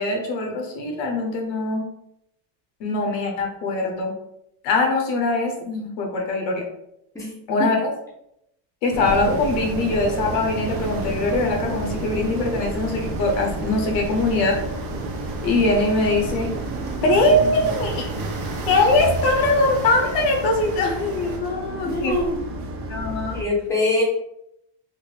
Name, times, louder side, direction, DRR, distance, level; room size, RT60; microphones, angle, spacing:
voice 1, 0.0-1.9 2.8-4.1 4.6-6.6 7.5-7.9 8.8-14.6 15.4-16.5 17.0-18.1 18.7-22.2 22.9-23.4, left 2 dB, 65° left, 2 dB, 0.9 m, -22 dB
sound 1, 8.9-23.4, right 2 dB, 30° right, 0.4 m, -31 dB
sound 2, 9.0-21.4, right 3 dB, 60° right, 0.9 m, -36 dB
voice 2, 21.8-22.4 23.3-24.0, left 2 dB, 5° left, -4 dB, 0.7 m, -23 dB
3.6 x 2.0 x 3.2 m, 0.80 s
cardioid pair, 145°, 46 cm